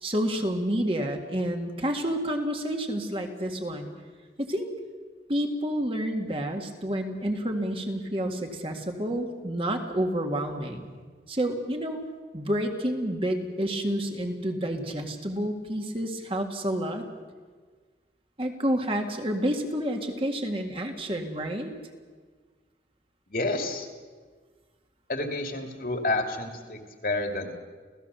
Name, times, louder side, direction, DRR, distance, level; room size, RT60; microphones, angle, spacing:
voice 1, 0.0-3.9 4.4-4.7 5.3-10.9 11.3-12.0 12.3-17.1 18.4-21.7, equal, 30° right, 3 dB, 2.0 m, -29 dB
voice 2, 23.3-23.9 25.1-27.5, left 2 dB, 55° left, 4 dB, 2.6 m, -29 dB
29.0 x 16.5 x 6.9 m, 1.5 s
head